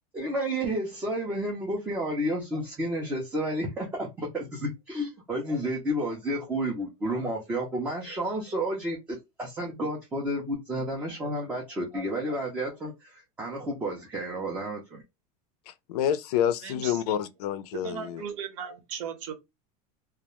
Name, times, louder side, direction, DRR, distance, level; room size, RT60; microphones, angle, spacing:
voice 1, 0.1-15.0, right 1 dB, 10° right, 0.4 m, -31 dB
voice 2, 15.7-18.2, left 10 dB, 85° left, 0.4 m, -28 dB
voice 3, 16.6-17.0 17.7-19.3, right 8 dB, 55° right, 0.8 m, -37 dB
2.3 x 2.1 x 2.8 m
supercardioid pair, 170°, 19 cm